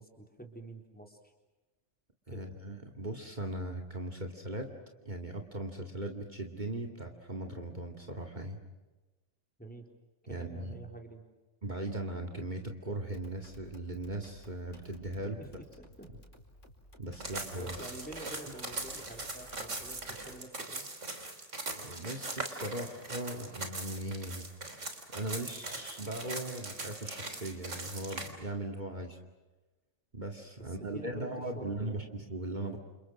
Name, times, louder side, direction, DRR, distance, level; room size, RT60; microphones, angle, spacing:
voice 1, 0.0-1.3 2.3-2.5 9.6-9.8 10.2-11.3 15.4-16.1 17.6-20.9 30.6-32.0, right 1 dB, 5° left, 3 dB, 3.8 m, -48 dB
voice 2, 2.3-4.7 5.0-8.6 10.3-10.7 11.6-15.4 17.0-17.8 21.8-24.5 25.1-29.2 30.1-32.8, right 1 dB, 40° right, 4 dB, 2.5 m, -39 dB
sound 1, 13.0-20.3, equal, 85° left, 5.0 m, -56 dB
sound 2, 17.2-28.3, right 2 dB, 90° right, 3.7 m, -41 dB
29.0 x 29.0 x 6.3 m, 1.2 s
omnidirectional pair, 1.2 m